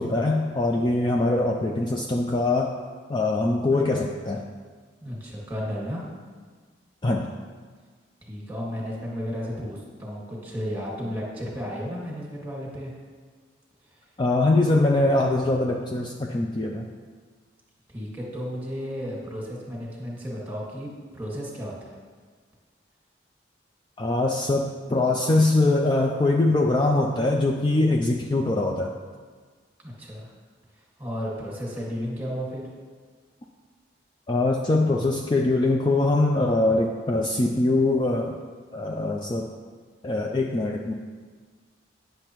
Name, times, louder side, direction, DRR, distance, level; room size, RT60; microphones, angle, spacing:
voice 1, 0.0-2.8 3.1-4.4 7.0-7.3 14.2-16.9 24.0-28.9 34.3-38.4 38.7-39.5 40.0-40.9, left 2 dB, 25° left, 1 dB, 0.3 m, -23 dB
voice 2, 5.0-6.1 8.2-13.0 13.9-14.0 17.9-22.0 29.8-30.3 31.0-32.6, equal, 10° right, -3 dB, 1.8 m, -33 dB
9.8 x 6.6 x 3.0 m, 1.5 s
head